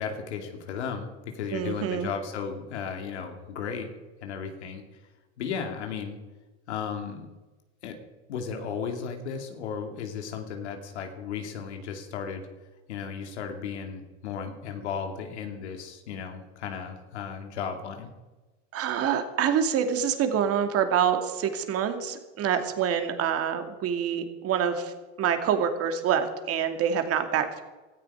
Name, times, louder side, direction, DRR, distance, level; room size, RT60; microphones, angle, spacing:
voice 1, 0.0-3.9 4.2-5.0 5.4-6.2 6.7-7.3 7.8-8.0 8.3-12.5 12.9-18.1, left 6 dB, 90° left, 4 dB, 2.6 m, -35 dB
voice 2, 1.5-2.1 18.7-24.9 25.2-27.6, right 8 dB, 45° right, 7 dB, 2.4 m, -26 dB
17.5 x 13.5 x 4.9 m, 1.2 s
supercardioid pair, 105°, 33 cm